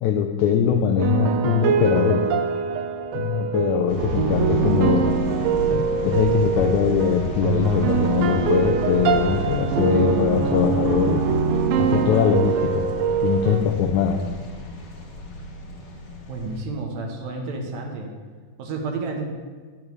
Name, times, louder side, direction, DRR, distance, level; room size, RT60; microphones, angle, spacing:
voice 1, 0.0-2.2 3.1-5.0 5.7-11.2 11.8-12.8 13.2-14.2, left 8 dB, 90° left, 4 dB, 1.7 m, -21 dB
sound 1, 1.0-13.6, right 7 dB, 85° right, 2.4 m, -23 dB
sound 2, 3.9-16.6, equal, 60° left, 2.6 m, -32 dB
voice 2, 16.3-18.1 18.6-19.3, right 3 dB, 65° right, 2 dB, 1.9 m, -30 dB
10.5 x 8.5 x 3.1 m, 1.5 s
omnidirectional pair, 4.0 m